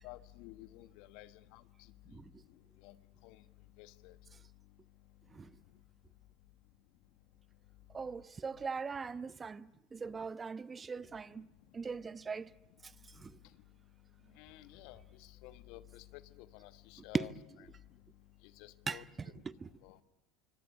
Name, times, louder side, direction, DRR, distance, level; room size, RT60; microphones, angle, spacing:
voice 1, 0.0-1.6 2.8-3.0 3.2-3.4 3.8-4.2 14.4-17.3 17.6-17.7 18.4-19.3 19.8-20.0, left 16 dB, 65° left, 1.4 m, -53 dB
voice 2, 7.9-11.5 11.7-12.5 13.2-13.3 17.1-17.3 18.9-19.7, right 5 dB, 25° right, 1.0 m, -40 dB
26.5 x 24.5 x 8.3 m
hypercardioid pair, 90°, 0 cm